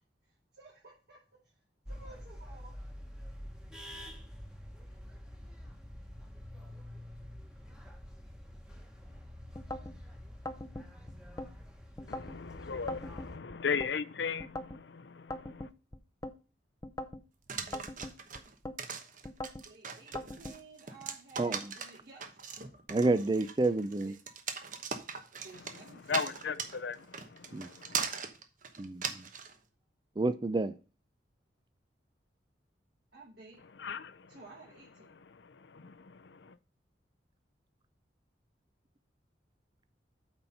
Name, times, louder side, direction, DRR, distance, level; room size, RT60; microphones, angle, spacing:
voice 1, 0.2-1.6 1.9-2.7 19.6-22.2 24.0-24.1 25.0-26.3 26.7-27.3 29.5-29.6 33.1-33.6 34.3-35.2, right 3 dB, 65° right, 4.1 m, -55 dB
sound 1, 1.9-13.4, equal, 5° right, 1.3 m, -47 dB
sound 2, 9.5-10.0 10.5-11.5 12.0-12.4 12.9-13.9 14.4-14.8 15.3-16.4 16.8-17.2 17.7-18.8 19.2-19.7 20.2-20.6, left 1 dB, 20° left, 0.6 m, -41 dB
voice 2, 12.1-15.7 26.1-28.1 33.8-34.3 35.3-36.6, left 6 dB, 70° left, 0.6 m, -37 dB
sound 3, 17.5-29.5, right 6 dB, 45° right, 1.1 m, -39 dB
voice 3, 22.9-24.1 27.5-27.7 28.8-29.3 30.2-30.7, right 2 dB, 25° right, 0.4 m, -29 dB
8.9 x 4.3 x 5.5 m
head